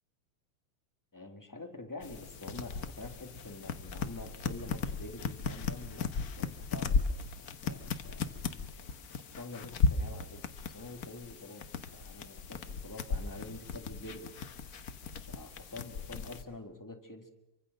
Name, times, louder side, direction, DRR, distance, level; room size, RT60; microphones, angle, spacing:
voice 1, 1.1-8.9 9.3-10.5 10.7-11.7 11.9-14.3 15.3-17.3, left 2 dB, 10° left, 5 dB, 1.0 m, -47 dB
sound 1, 2.0-16.4, left 4 dB, 85° left, 0.8 m, -36 dB
26.5 x 24.5 x 6.4 m, 0.87 s
omnidirectional pair, 3.5 m